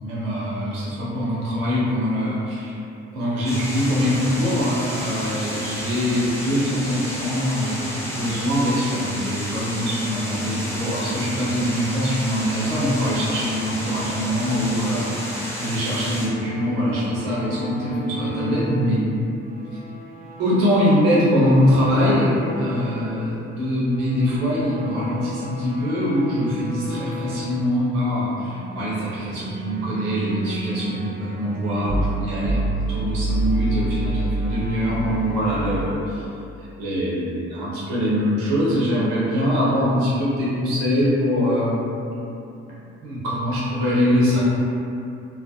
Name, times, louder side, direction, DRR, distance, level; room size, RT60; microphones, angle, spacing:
voice 1, 0.0-2.8 3.1-19.0 20.4-36.2 36.8-41.8 43.0-44.4, equal, 85° right, -8 dB, 0.8 m, -23 dB
sound 1, 3.4-16.3, equal, 10° left, 0.7 m, -31 dB
sound 2, 16.1-23.2 23.5-27.6 28.2-35.9, right 2 dB, 30° right, 0.4 m, -31 dB
2.4 x 2.0 x 2.7 m, 2.6 s
hypercardioid pair, 50°, 29 cm